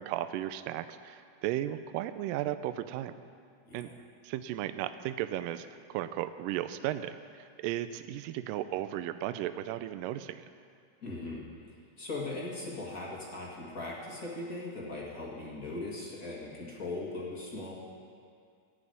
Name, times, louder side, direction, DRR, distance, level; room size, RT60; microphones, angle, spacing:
voice 1, 0.0-3.1 3.7-3.9 4.2-10.5, right 13 dB, 85° right, 12 dB, 2.2 m, -35 dB
voice 2, 3.6-3.9 11.0-11.4 12.0-17.7, left 2 dB, 35° left, -3 dB, 1.5 m, -39 dB
15.0 x 6.1 x 9.1 m, 2.2 s
omnidirectional pair, 3.9 m